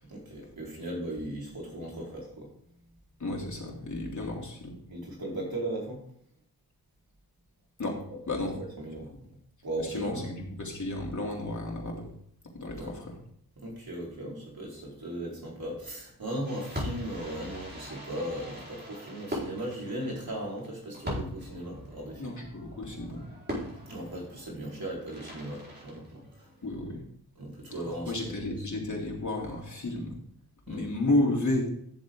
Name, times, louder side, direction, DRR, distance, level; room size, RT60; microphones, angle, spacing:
voice 1, 0.1-2.5 4.1-4.3 4.9-6.0 8.6-9.1 9.6-10.3 12.8-12.9 13.6-22.4 23.9-26.5 27.3-28.1 28.4-28.6 30.7-30.9, right 1 dB, 60° right, -3 dB, 4.6 m, -37 dB
voice 2, 3.2-4.7 7.8-8.0 8.3-8.5 9.8-12.1 12.5-13.2 22.2-23.3 26.6-27.0 27.8-30.2 30.7-31.7, left 2 dB, 45° left, -2 dB, 3.4 m, -32 dB
Fireworks, 16.4-26.7, equal, 25° right, 4.8 m, -41 dB
11.0 x 7.4 x 3.9 m, 0.64 s
cardioid pair, 65°, 40 cm